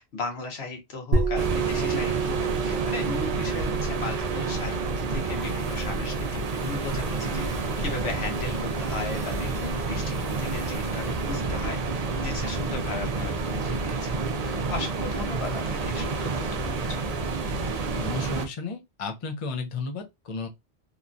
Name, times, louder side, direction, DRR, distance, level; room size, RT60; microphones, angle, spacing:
voice 1, 0.0-17.2, left 3 dB, 75° left, 1.1 m, -37 dB
sound 1, 1.1-10.5, right 5 dB, 65° right, 0.8 m, -32 dB
sound 2, 1.4-18.5, right 3 dB, 50° right, 0.5 m, -29 dB
sound 3, 5.2-11.4, right 1 dB, 15° right, 0.9 m, -49 dB
voice 2, 17.9-20.5, left 4 dB, 40° left, 0.5 m, -33 dB
2.9 x 2.2 x 2.5 m
omnidirectional pair, 1.1 m